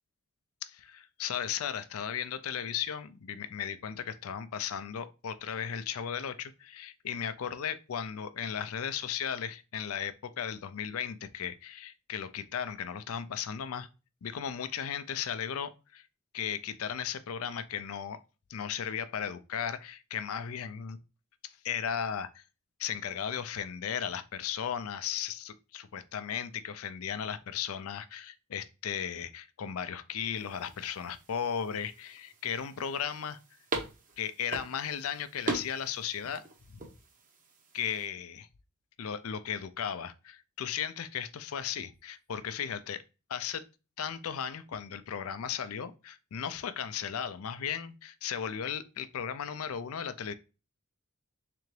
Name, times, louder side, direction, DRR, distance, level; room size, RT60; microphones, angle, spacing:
voice 1, 0.6-13.9 14.2-16.0 16.3-18.2 18.5-21.0 21.4-22.4 22.8-33.4 34.2-36.4 37.7-38.5 39.0-43.0 43.3-43.6 44.0-50.3, left 8 dB, 70° left, 0.4 m, -36 dB
sound 1, 30.4-38.1, right 2 dB, 40° right, 0.8 m, -41 dB
3.8 x 3.4 x 3.2 m
head